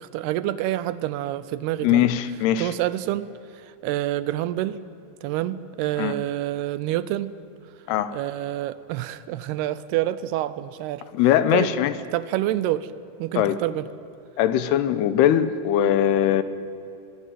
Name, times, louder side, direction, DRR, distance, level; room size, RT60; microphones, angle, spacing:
voice 1, 0.0-2.1 2.6-3.3 3.5-4.8 5.2-7.4 8.1-11.0 11.5-11.7 12.1-12.9 13.2-13.9, right 14 dB, 80° right, 16 dB, 2.5 m, -27 dB
voice 2, 1.8-2.7 6.0-6.1 7.9-8.1 11.1-11.9 13.4-13.6 14.4-16.4, left 11 dB, 80° left, 13 dB, 2.8 m, -20 dB
23.0 x 21.5 x 9.2 m, 2.7 s
omnidirectional pair, 4.9 m